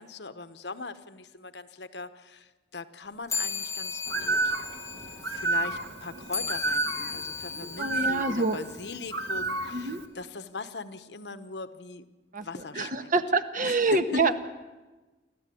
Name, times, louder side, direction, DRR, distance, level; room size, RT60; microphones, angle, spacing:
voice 1, 0.0-4.5 5.2-12.0 12.4-13.1 13.6-14.4, left 3 dB, 75° left, 12 dB, 1.1 m, -41 dB
sound 1, 3.3-9.1, left 5 dB, 20° left, 1.6 m, -37 dB
Bird, 4.1-10.1, right 2 dB, 75° right, 1.9 m, -31 dB
voice 2, 7.5-8.6 9.7-10.0 12.3-12.4 12.8-14.4, right 3 dB, 50° right, 9 dB, 1.4 m, -26 dB
29.0 x 12.5 x 8.6 m, 1.2 s
head